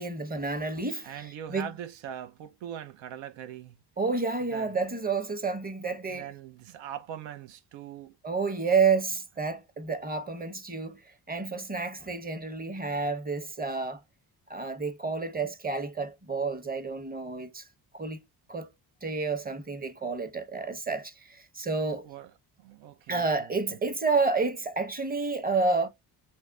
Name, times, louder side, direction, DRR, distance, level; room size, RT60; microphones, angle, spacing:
voice 1, 0.0-1.7 4.0-6.3 8.2-14.0 14.5-17.7 17.9-18.2 18.5-18.7 19.0-22.1 23.1-25.9, right 4 dB, 20° right, 0.8 m, -30 dB
voice 2, 1.0-3.8 4.5-4.7 6.1-8.2 21.9-23.8, right 9 dB, 85° right, 0.6 m, -42 dB
6.3 x 2.2 x 2.3 m
supercardioid pair, 60°, 45 cm